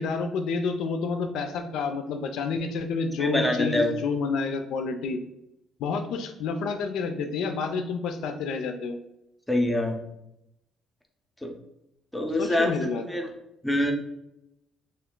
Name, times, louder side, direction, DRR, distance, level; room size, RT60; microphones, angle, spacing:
voice 1, 0.0-5.2 5.8-9.0 12.4-13.0, left 4 dB, 80° left, 6 dB, 0.3 m, -29 dB
voice 2, 3.2-4.0 9.5-10.0 11.4-11.5 12.1-12.7 13.1-13.3 13.6-13.9, left 1 dB, 5° left, 3 dB, 0.4 m, -25 dB
2.4 x 2.4 x 3.6 m, 0.84 s
cardioid pair, 155°, 0 cm